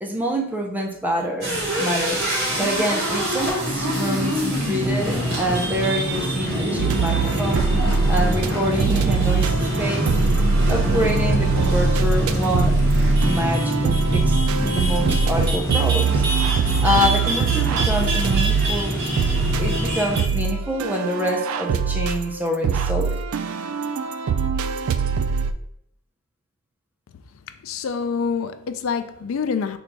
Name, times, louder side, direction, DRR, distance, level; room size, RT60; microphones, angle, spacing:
voice 1, 0.0-2.2 2.6-7.6 8.1-10.1 10.7-12.8 13.2-14.4 14.7-16.2 16.8-19.0 19.6-23.2, equal, 10° right, 0.4 m, -26 dB
sound 1, 1.4-20.4, equal, 50° right, 1.2 m, -24 dB
sound 2, 6.8-8.5 8.8-25.5, right 5 dB, 80° right, 0.3 m, -22 dB
voice 2, 27.5-29.8, left 5 dB, 70° left, 0.4 m, -26 dB
3.9 x 2.3 x 4.5 m
head